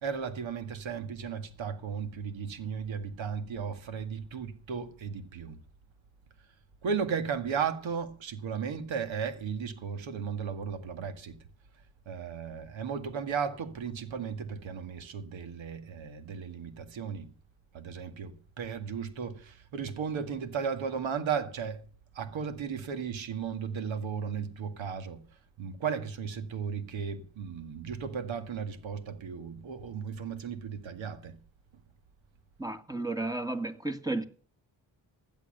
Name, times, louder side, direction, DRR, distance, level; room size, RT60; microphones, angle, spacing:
voice 1, 0.0-5.6 6.8-11.5 12.1-17.3 17.7-21.9 22.1-25.3 25.6-31.4, right 6 dB, 80° right, 2.1 m, -35 dB
voice 2, 32.6-34.2, right 2 dB, 10° right, 1.8 m, -33 dB
16.0 x 10.5 x 6.7 m
cardioid pair, 60°, 46 cm